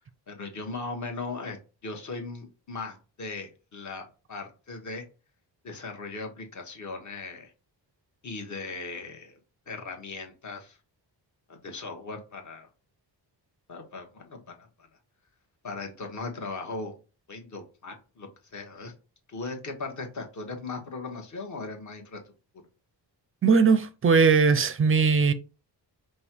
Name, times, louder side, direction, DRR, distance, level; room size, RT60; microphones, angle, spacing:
voice 1, 0.3-1.6 1.8-5.0 5.6-7.5 8.2-9.4 9.7-10.8 11.5-12.7 13.7-14.7 15.6-17.0 17.3-18.9 19.3-22.2, left 3 dB, 40° left, 1.1 m, -38 dB
voice 2, 23.4-25.3, right 5 dB, 30° right, 0.4 m, -20 dB
5.2 x 2.2 x 4.5 m
wide cardioid pair, 140°, 43 cm